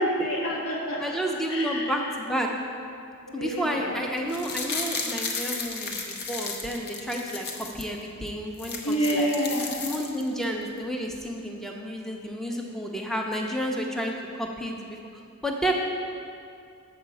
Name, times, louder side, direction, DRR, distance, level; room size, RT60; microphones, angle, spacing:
voice 1, 0.0-1.2 1.5-1.9 3.3-3.9 8.8-9.8, equal, 75° left, -3 dB, 1.5 m, -27 dB
voice 2, 1.0-2.5 3.3-9.3 9.8-15.0 15.4-15.7, equal, ahead, 1 dB, 0.6 m, -31 dB
sound 1, 4.2-7.9 8.3-8.4 8.5-10.4 10.8-10.9, left 4 dB, 50° left, 0.8 m, -34 dB
7.2 x 4.8 x 7.1 m, 2.4 s
head